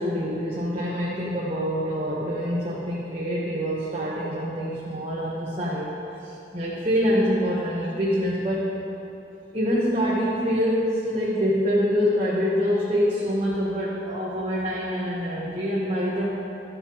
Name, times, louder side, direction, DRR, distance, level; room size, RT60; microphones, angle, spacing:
voice 1, 0.0-5.9 6.2-8.8 9.5-16.4, equal, 30° right, -8 dB, 1.1 m, -25 dB
14.0 x 6.6 x 3.0 m, 2.9 s
head